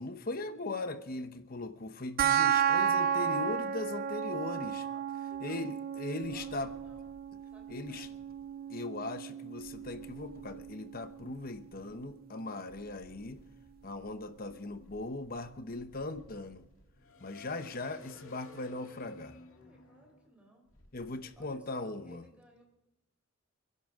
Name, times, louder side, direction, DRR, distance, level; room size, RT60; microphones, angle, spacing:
voice 1, 0.0-4.8 5.4-6.7 7.7-8.1 8.7-13.4 13.8-16.6 17.2-19.4 20.9-22.2, left 2 dB, 45° left, 9 dB, 0.9 m, -39 dB
sound 1, 2.2-13.2, right 8 dB, 45° right, 0.4 m, -34 dB
voice 2, 4.5-5.7 6.3-7.1 7.5-8.2 19.5-20.7 21.2-22.6, equal, 5° right, 0 dB, 3.9 m, -61 dB
sound 2, 6.2-8.5 9.6-12.1 12.7-21.5, left 1 dB, 90° left, 2.0 m, -58 dB
28.0 x 11.0 x 3.6 m, 0.98 s
head